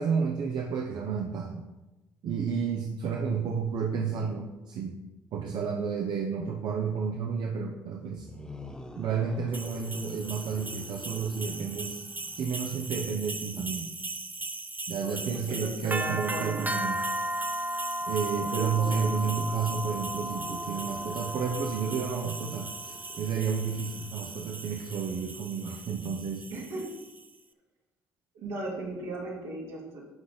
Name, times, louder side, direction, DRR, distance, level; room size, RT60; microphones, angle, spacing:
voice 1, 0.0-1.6 2.2-5.0 5.3-8.3 9.0-12.1 12.3-13.9 14.9-17.1 18.1-26.4, right 6 dB, 60° right, 3 dB, 0.9 m, -31 dB
sound 1, 8.1-13.3 19.5-25.2, left 1 dB, 10° left, 1.3 m, -48 dB
sound 2, 9.5-27.3, right 1 dB, 20° right, 0.8 m, -36 dB
voice 2, 14.9-16.7 18.3-19.5 26.5-26.8 28.3-30.0, right 2 dB, 80° right, -4 dB, 2.7 m, -37 dB
11.5 x 4.9 x 4.1 m, 1.1 s
hypercardioid pair, 50°, 8 cm